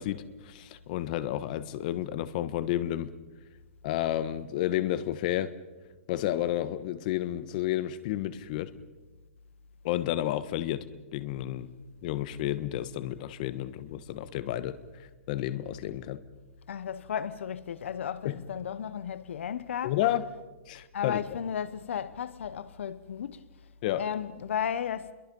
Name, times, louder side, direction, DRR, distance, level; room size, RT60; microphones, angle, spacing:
voice 1, 0.0-3.1 3.8-5.5 6.1-8.8 9.8-11.7 12.0-14.8 15.3-16.2 18.2-18.4 19.8-20.2 20.7-21.2 23.8-24.1, left 13 dB, 40° left, 1.3 m, -31 dB
voice 2, 16.7-19.9 20.9-23.4 24.0-25.1, left 8 dB, 70° left, 1.0 m, -34 dB
28.5 x 22.5 x 5.4 m
hypercardioid pair, 160°, 7 cm